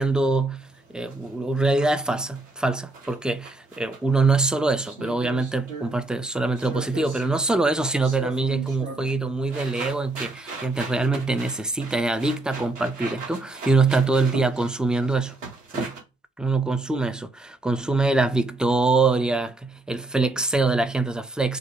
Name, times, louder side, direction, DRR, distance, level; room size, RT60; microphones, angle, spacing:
voice 1, 0.0-15.4 15.7-16.0 16.4-21.6, right 3 dB, ahead, 0.4 m, -24 dB
sound 1, 0.6-16.0, right 3 dB, 70° right, 2.1 m, -38 dB
6.6 x 2.3 x 3.4 m
figure-of-eight pair, 65°, 39 cm